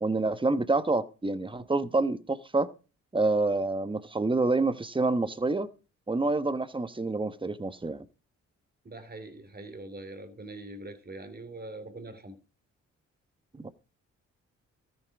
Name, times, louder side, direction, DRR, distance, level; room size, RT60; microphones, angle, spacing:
voice 1, 0.0-2.7 3.1-5.7 6.1-8.0 13.5-13.7, right 3 dB, 15° right, 1.1 m, -27 dB
voice 2, 8.8-12.4, right 2 dB, 30° right, 2.7 m, -43 dB
13.5 x 9.1 x 4.7 m
cardioid pair, 70°, 30 cm